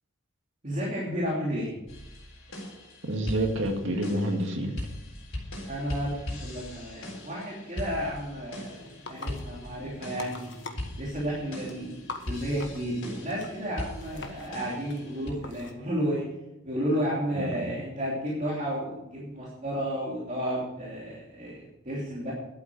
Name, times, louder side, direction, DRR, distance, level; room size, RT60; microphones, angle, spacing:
voice 1, 0.6-1.7 5.7-10.5 11.0-12.0 12.3-16.3 16.6-22.3, equal, 35° right, -6 dB, 2.8 m, -32 dB
sound 1, 1.9-15.3, left 1 dB, 75° left, 3.9 m, -40 dB
voice 2, 3.1-4.8 17.3-17.7, right 1 dB, 65° right, 3 dB, 2.0 m, -28 dB
sound 2, 8.6-15.7, left 3 dB, 60° left, 1.4 m, -45 dB
12.0 x 8.9 x 6.3 m, 0.95 s
head